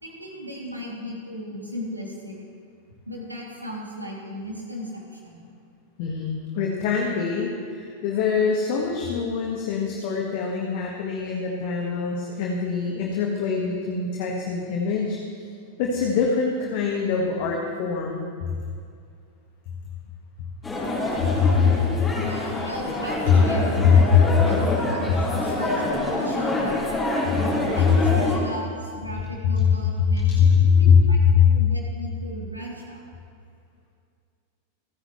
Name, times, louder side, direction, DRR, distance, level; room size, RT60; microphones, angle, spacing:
voice 1, 0.0-2.4 3.1-5.5 22.2-23.7 24.4-27.0 27.7-33.1, equal, 85° right, -2 dB, 2.8 m, -36 dB
voice 2, 6.0-15.2 15.8-18.2 21.2-22.1 23.3-23.4 23.8-24.3 27.9-28.0 29.6-29.7 30.1-31.0 31.3-31.5, left 6 dB, 50° left, -1 dB, 1.6 m, -22 dB
sound 1, 20.6-28.4, left 2 dB, 15° left, 3.9 m, -26 dB
28.0 x 9.8 x 3.2 m, 2.2 s
figure-of-eight pair, 90°, 0 cm